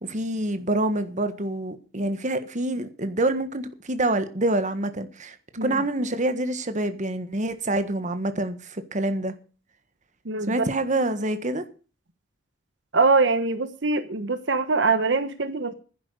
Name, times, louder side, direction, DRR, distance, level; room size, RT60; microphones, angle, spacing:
voice 1, 0.0-5.3 5.6-9.3 10.5-11.6, right 1 dB, 40° right, 1.6 m, -26 dB
voice 2, 10.2-10.6 12.9-15.7, right 3 dB, 70° right, 1.3 m, -23 dB
11.5 x 10.5 x 6.6 m
head